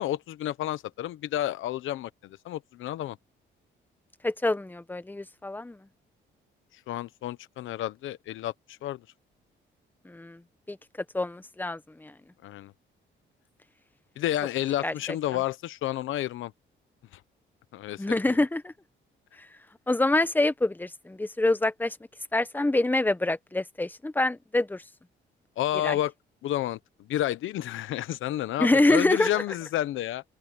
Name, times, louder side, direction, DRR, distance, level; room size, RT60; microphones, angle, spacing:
voice 1, 0.0-3.2 6.9-9.0 12.4-12.7 14.2-16.5 17.1-17.2 17.7-18.0 25.6-26.1 26.4-30.2, left 13 dB, 80° left, 1.0 m, -30 dB
voice 2, 4.2-5.8 10.0-10.4 10.7-10.8 11.1-12.1 14.8-15.2 18.0-18.7 19.9-22.0 22.3-24.8 25.8-26.0 28.6-29.4, left 2 dB, 10° left, 1.2 m, -26 dB
open air
cardioid pair, 90°, 20 cm